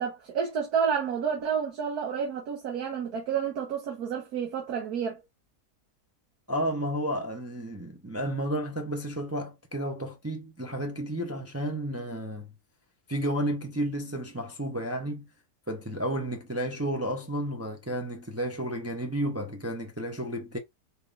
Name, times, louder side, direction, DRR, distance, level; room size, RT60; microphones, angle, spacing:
voice 1, 0.0-5.2, right 7 dB, 70° right, 1.5 m, -30 dB
voice 2, 6.5-12.5 13.1-15.3 15.7-20.6, right 1 dB, 25° right, 0.3 m, -32 dB
4.2 x 3.6 x 2.5 m
omnidirectional pair, 1.7 m